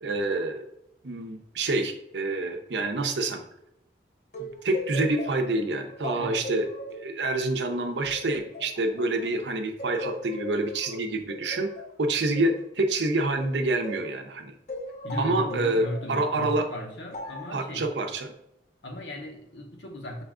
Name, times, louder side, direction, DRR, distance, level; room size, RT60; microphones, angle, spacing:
voice 1, 0.0-0.7 1.0-3.4 4.4-6.7 7.0-11.7 12.0-14.5 15.2-16.6 17.5-18.3, right 2 dB, 75° right, 5 dB, 0.6 m, -27 dB
sound 1, 4.3-9.4 9.8-14.1 14.7-16.1 17.1-17.6, left 1 dB, 40° left, 0.5 m, -39 dB
voice 2, 6.1-6.5 15.0-17.9 18.8-20.2, left 1 dB, 85° left, 2 dB, 0.9 m, -36 dB
5.6 x 2.4 x 3.6 m, 0.80 s
head